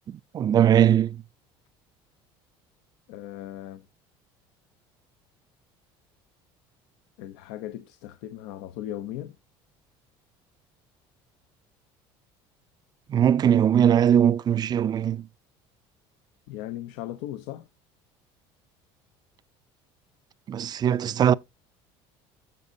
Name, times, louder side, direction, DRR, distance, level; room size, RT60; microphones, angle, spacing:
voice 1, 0.1-1.2 13.1-15.3 20.5-21.3, right 9 dB, 35° right, 0.4 m, -20 dB
voice 2, 3.1-3.9 7.2-9.4 16.5-17.7, left 13 dB, 80° left, 0.7 m, -37 dB
13.5 x 5.3 x 2.7 m
supercardioid pair, 100°, 12 cm